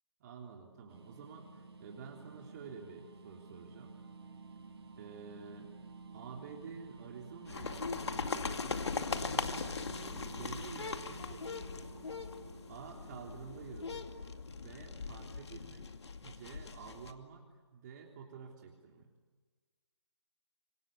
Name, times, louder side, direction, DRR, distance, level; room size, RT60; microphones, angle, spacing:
voice 1, 0.2-4.0 4.9-5.7 6.1-11.9 12.7-14.0 14.5-15.9 16.2-19.1, right 6 dB, 40° right, 1 dB, 3.4 m, -50 dB
sound 1, 0.9-13.7, right 3 dB, 60° right, 4.6 m, -52 dB
sound 2, 7.5-17.1, left 4 dB, 70° left, 2.4 m, -40 dB
27.0 x 25.5 x 8.5 m, 1.4 s
figure-of-eight pair, 140°, 15 cm